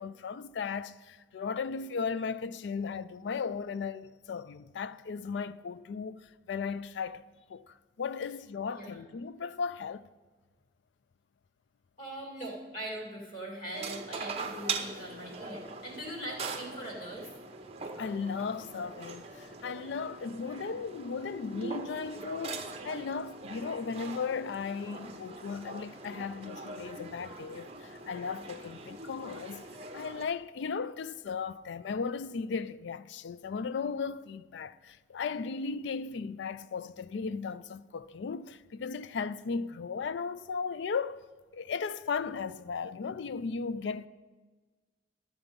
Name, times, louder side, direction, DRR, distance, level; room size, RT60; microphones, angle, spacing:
voice 1, 0.0-6.2 6.5-10.1 18.0-29.7 29.9-41.3 41.5-44.1, left 5 dB, 80° left, 0.4 m, -36 dB
voice 2, 12.0-17.3, right 1 dB, 50° left, 2.2 m, -41 dB
sound 1, 13.7-30.2, right 4 dB, 35° right, 0.8 m, -42 dB
12.5 x 7.0 x 5.2 m
head